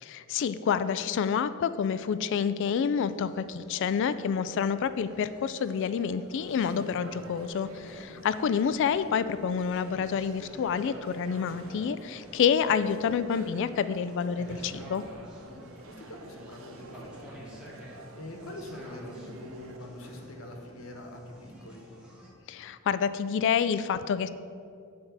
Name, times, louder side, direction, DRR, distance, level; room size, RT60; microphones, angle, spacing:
voice 1, 0.0-15.0 22.5-24.3, left 7 dB, 60° left, 13 dB, 0.3 m, -28 dB
sound 1, 2.9-22.3, equal, 5° right, 1.8 m, -51 dB
sound 2, 6.1-19.8, right 2 dB, 70° right, 0.7 m, -50 dB
voice 2, 7.6-8.1 15.4-21.9, left 1 dB, 80° left, 3 dB, 1.4 m, -45 dB
8.7 x 4.7 x 7.3 m, 2.5 s
head